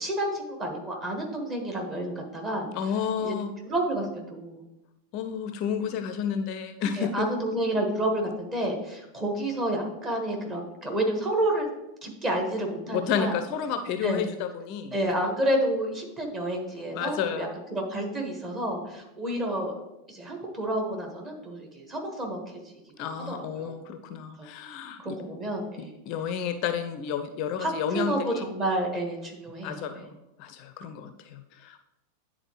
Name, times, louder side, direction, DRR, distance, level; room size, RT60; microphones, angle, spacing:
voice 1, 0.0-2.7 3.2-3.3 3.6-4.6 6.9-11.7 12.0-13.4 14.0-14.3 14.9-19.7 20.1-23.7 24.4-24.5 25.0-25.9 27.6-29.8, right 1 dB, 20° right, 1 dB, 1.5 m, -30 dB
voice 2, 2.7-3.5 5.1-7.3 12.9-14.9 16.9-17.5 23.0-25.2 26.1-28.4 29.6-31.8, left 7 dB, 40° left, 9 dB, 0.4 m, -31 dB
9.8 x 3.8 x 3.1 m, 0.92 s
figure-of-eight pair, 90°, 0 cm